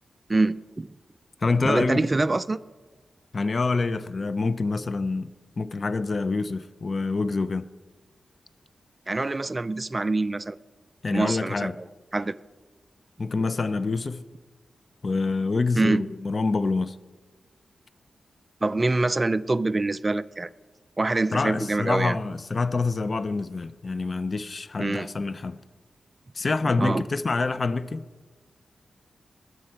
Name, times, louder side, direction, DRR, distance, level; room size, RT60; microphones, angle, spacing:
voice 1, 0.3-0.9 1.6-2.6 9.1-10.6 11.1-11.9 12.1-12.3 15.8-16.0 18.6-20.5 21.0-22.2 24.8-25.1 26.8-27.0, right 2 dB, 25° right, 0.3 m, -25 dB
voice 2, 1.4-2.1 3.3-5.3 5.6-7.7 11.0-11.8 13.2-14.2 15.0-17.0 21.3-25.6 26.3-28.0, left 3 dB, 45° left, 0.4 m, -26 dB
20.5 x 7.5 x 4.5 m
wide cardioid pair, 100°, 0 cm